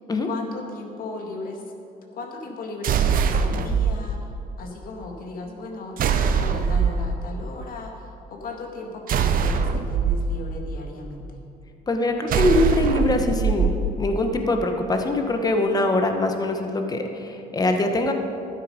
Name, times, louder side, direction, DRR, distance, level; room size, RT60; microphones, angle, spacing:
voice 1, 0.2-1.6 2.1-4.2 4.6-11.4, left 2 dB, 60° left, 2 dB, 1.9 m, -36 dB
sound 1, 2.8-3.9 6.0-7.0 9.1-10.2 12.3-13.7, right 6 dB, 55° right, 0.8 m, -22 dB
voice 2, 11.9-18.1, left 2 dB, 20° left, 5 dB, 1.2 m, -23 dB
12.5 x 9.6 x 5.2 m, 2.7 s
cardioid pair, 110°, 17 cm